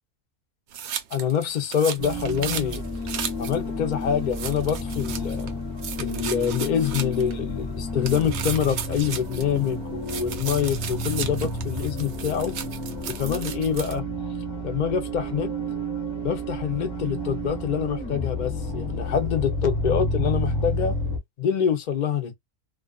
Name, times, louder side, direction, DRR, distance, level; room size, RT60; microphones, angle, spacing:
sound 1, 0.7-3.6 3.9-4.0 4.3-5.5 5.8-7.3 8.0-9.7 10.1-13.9, right 8 dB, 70° right, 0.6 m, -35 dB
voice 1, 1.1-2.8 3.4-5.5 6.0-12.5 13.2-14.0 14.6-15.5 16.2-21.0 21.4-22.3, left 8 dB, 70° left, 0.4 m, -26 dB
sound 2, 2.0-21.2, left 1 dB, 25° left, 0.7 m, -31 dB
2.4 x 2.3 x 2.3 m
omnidirectional pair, 1.6 m